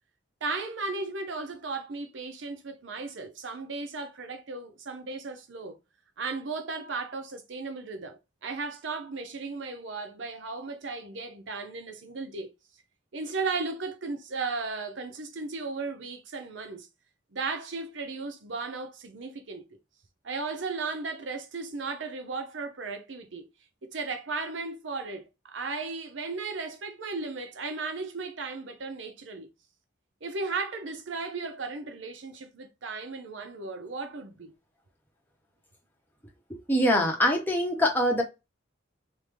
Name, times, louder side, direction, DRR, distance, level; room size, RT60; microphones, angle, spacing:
voice 1, 0.4-5.8 6.2-12.5 13.1-16.9 17.3-19.6 20.2-23.4 23.8-29.5 30.2-34.5, right 4 dB, 70° right, 0.7 m, -35 dB
voice 2, 36.5-38.2, left 1 dB, 10° left, 0.9 m, -24 dB
3.4 x 2.1 x 3.4 m
head